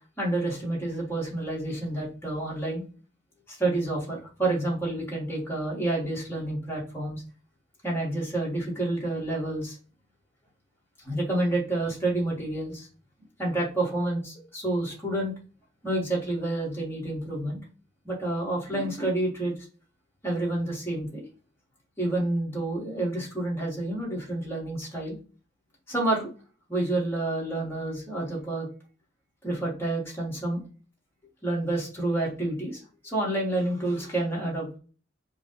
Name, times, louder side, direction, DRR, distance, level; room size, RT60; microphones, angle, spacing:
voice 1, 0.2-2.8 3.5-7.2 7.8-9.8 11.0-12.9 13.4-15.3 15.8-17.6 18.1-19.5 20.2-21.2 22.0-25.2 25.9-26.3 26.7-28.7 29.4-30.6 31.4-34.7, right 2 dB, 10° left, -4 dB, 1.9 m, -29 dB
4.8 x 2.5 x 4.0 m, 0.37 s
head